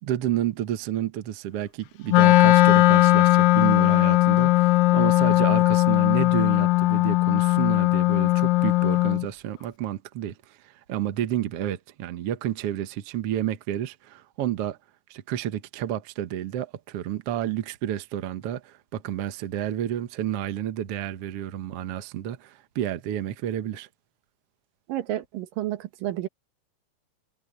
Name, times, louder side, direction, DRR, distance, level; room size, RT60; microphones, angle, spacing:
voice 1, 0.0-14.8 15.1-23.9, right 11 dB, 60° right, 1.7 m, -30 dB
Wind instrument woodwind instrument, 2.1-9.3, left 18 dB, 85° left, 2.5 m, -19 dB
voice 2, 24.9-26.3, right 13 dB, 80° right, 2.9 m, -30 dB
omnidirectional pair, 3.9 m